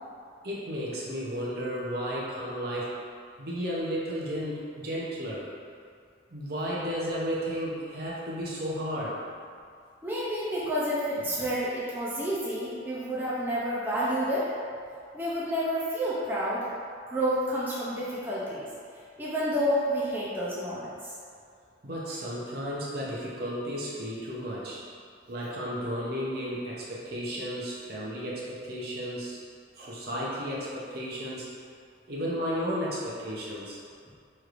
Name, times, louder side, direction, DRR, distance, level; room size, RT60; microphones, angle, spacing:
voice 1, 0.4-3.0 3.4-5.5 6.3-9.2 21.8-24.8 25.3-29.4 29.8-31.5 32.1-33.8, equal, 55° right, -6 dB, 0.7 m, -33 dB
voice 2, 10.0-14.5 15.1-16.7 17.1-18.7 19.2-21.1, equal, 10° right, -9 dB, 0.5 m, -29 dB
4.5 x 3.2 x 2.5 m, 2.3 s
head